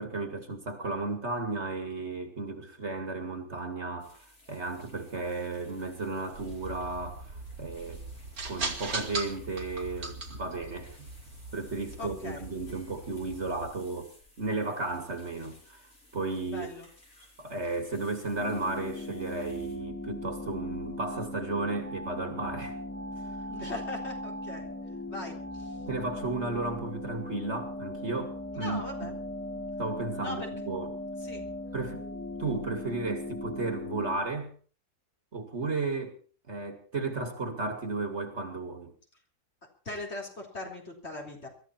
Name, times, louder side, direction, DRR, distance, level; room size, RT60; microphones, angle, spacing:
voice 1, 0.0-4.2 4.5-8.0 8.4-11.1 11.5-14.1 14.4-15.9 16.1-16.7 17.4-22.8 25.9-29.2 29.8-31.0 31.7-32.0 32.4-34.5 35.3-36.2 36.5-38.9, right 3 dB, 45° right, 2.7 m, -34 dB
sound 1, 4.0-19.8, left 1 dB, 60° left, 6.0 m, -58 dB
sound 2, 6.3-13.7, right 3 dB, 70° right, 2.8 m, -40 dB
voice 2, 12.0-12.4 16.5-16.9 23.5-24.7 25.1-25.7 28.5-29.1 30.2-30.7 31.2-31.5 39.9-41.5, left 2 dB, 45° left, 4.4 m, -40 dB
sound 3, 18.4-34.2, left 1 dB, 10° left, 1.3 m, -39 dB
22.5 x 14.0 x 4.5 m
omnidirectional pair, 1.6 m